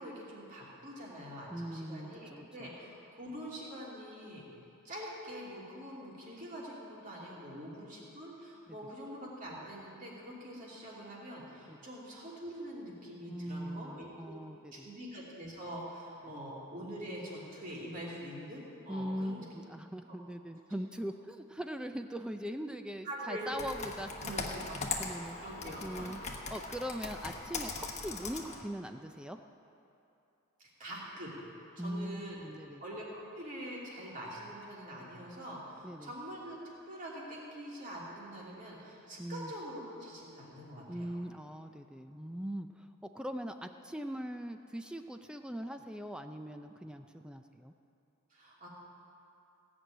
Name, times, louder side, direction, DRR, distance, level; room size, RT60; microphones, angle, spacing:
voice 1, 0.0-4.5 4.8-14.3 14.7-19.4 20.1-20.2 23.0-23.5 24.2-24.8 25.3-26.2 30.6-31.4 31.8-32.4 32.8-41.2 48.3-48.7, equal, 35° right, -5 dB, 2.9 m, -45 dB
voice 2, 1.5-2.7 8.7-8.8 11.7-11.8 13.3-14.9 16.3-16.5 18.9-24.5 25.0-25.4 25.8-26.2 26.5-29.4 31.8-32.8 35.8-36.1 39.2-39.5 40.9-47.7, equal, 5° right, 7 dB, 0.3 m, -41 dB
Computer keyboard, 23.5-28.6, left 4 dB, 30° left, 1.1 m, -40 dB
16.5 x 6.2 x 9.0 m, 2.8 s
head